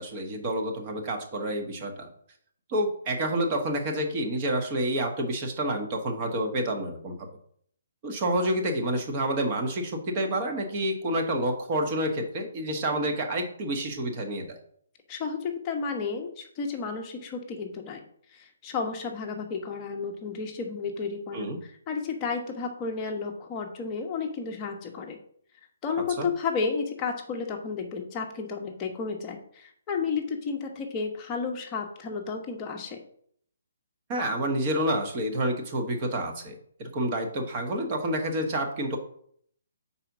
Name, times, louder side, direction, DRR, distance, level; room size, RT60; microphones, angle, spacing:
voice 1, 0.0-2.1 2.7-7.2 8.0-14.6 21.3-21.6 26.2-26.3 34.1-39.0, right 1 dB, 25° right, 4 dB, 1.1 m, -28 dB
voice 2, 15.1-18.0 18.3-25.2 25.8-33.0, left 5 dB, 20° left, 2 dB, 0.9 m, -32 dB
4.9 x 4.1 x 5.9 m, 0.64 s
hypercardioid pair, 165°, 0 cm